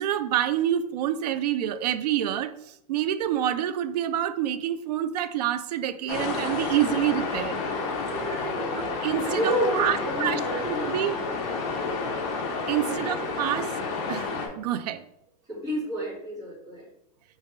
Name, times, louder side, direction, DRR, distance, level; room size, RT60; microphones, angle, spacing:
voice 1, 0.0-7.6 8.7-11.2 12.7-13.7 14.1-15.0, right 11 dB, 80° right, 12 dB, 0.4 m, -27 dB
sound 1, 6.1-14.5, left 4 dB, 45° left, 0.9 m, -30 dB
voice 2, 8.1-8.7 9.2-10.9 12.8-13.3 15.5-16.9, equal, 15° right, -7 dB, 1.8 m, -30 dB
3.4 x 3.2 x 4.5 m, 0.77 s
supercardioid pair, 165°, 20 cm